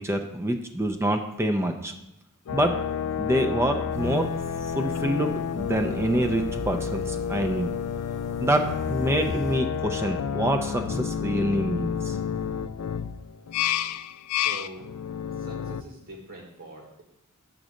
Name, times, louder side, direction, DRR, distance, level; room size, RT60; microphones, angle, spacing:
voice 1, 0.0-1.9 2.5-2.8 3.2-4.3 4.7-7.7 8.4-12.2, right 1 dB, 10° right, 5 dB, 0.4 m, -26 dB
sound 1, 2.5-15.8, left 8 dB, 90° left, 0.4 m, -30 dB
sound 2, 3.9-9.6, equal, 35° right, 1.1 m, -45 dB
voice 2, 14.3-14.8 15.3-17.0, right 2 dB, 65° right, 0 dB, 1.3 m, -43 dB
7.1 x 3.9 x 6.3 m, 0.90 s
head